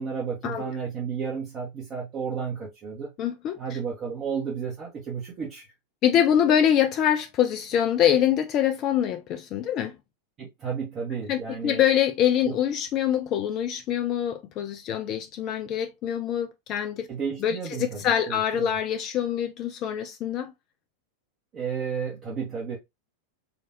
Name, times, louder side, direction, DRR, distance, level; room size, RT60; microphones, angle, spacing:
voice 1, 0.0-3.1 3.6-5.6 10.4-11.8 12.4-12.5 17.1-18.0 18.3-18.7 21.5-22.8, right 6 dB, 30° right, 1.6 m, -32 dB
voice 2, 3.2-3.8 6.0-10.0 11.3-17.1 17.4-20.5, left 9 dB, 35° left, 0.5 m, -24 dB
4.2 x 3.1 x 2.8 m
figure-of-eight pair, 90°, 0 cm